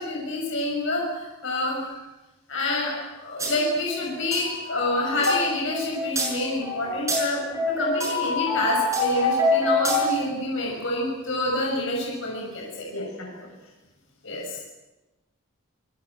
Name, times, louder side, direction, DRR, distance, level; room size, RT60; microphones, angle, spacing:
voice 1, 0.0-2.0 2.5-7.4 7.7-12.9 14.2-14.6, left 2 dB, 60° left, -2 dB, 6.7 m, -27 dB
sound 1, 3.4-3.5 3.8-10.3, left 1 dB, 15° right, 6.0 m, -25 dB
voice 2, 12.9-13.5, left 1 dB, 80° left, 1 dB, 7.6 m, -36 dB
26.5 x 21.0 x 8.1 m, 1.0 s
head